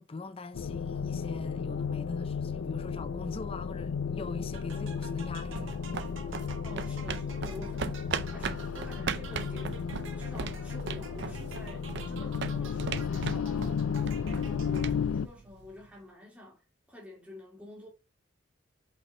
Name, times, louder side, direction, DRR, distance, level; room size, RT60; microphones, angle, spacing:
voice 1, 0.0-5.8, left 3 dB, 25° left, 0.4 m, -41 dB
sound 1, 0.5-15.3, left 6 dB, 85° left, 0.4 m, -34 dB
sound 2, 4.5-15.2, right 4 dB, 70° right, 1.4 m, -48 dB
sound 3, 5.2-15.9, right 5 dB, 55° right, 0.5 m, -39 dB
voice 2, 6.6-9.8 10.2-13.8 14.2-16.6 16.9-17.9, left 2 dB, 5° right, 2.2 m, -48 dB
5.5 x 5.4 x 3.3 m
head